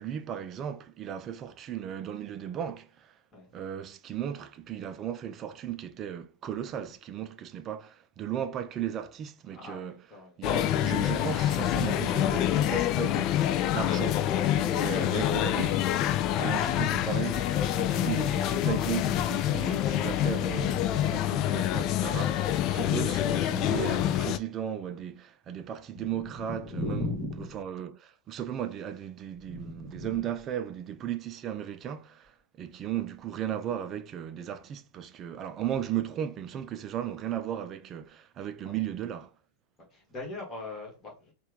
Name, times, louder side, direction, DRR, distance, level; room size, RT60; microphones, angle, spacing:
voice 1, 0.0-3.2 3.5-10.0 10.4-16.0 16.4-27.0 27.5-32.3 32.6-39.3, right 10 dB, 30° right, 0.5 m, -36 dB
voice 2, 9.5-10.7 25.9-27.6 29.4-30.3 38.6-38.7 39.9-41.3, left 2 dB, 20° left, 2.2 m, -38 dB
sound 1, 10.4-24.4, left 12 dB, 40° left, 0.3 m, -27 dB
4.4 x 2.5 x 3.6 m
figure-of-eight pair, 90°, 0 cm